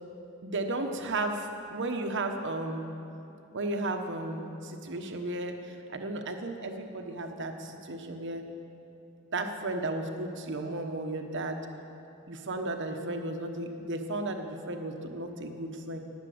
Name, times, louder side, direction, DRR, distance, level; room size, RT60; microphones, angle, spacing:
voice 1, 0.4-2.9 3.5-8.4 9.3-11.6 12.3-16.0, right 2 dB, 60° right, 5 dB, 1.2 m, -34 dB
19.5 x 7.4 x 7.9 m, 2.9 s
head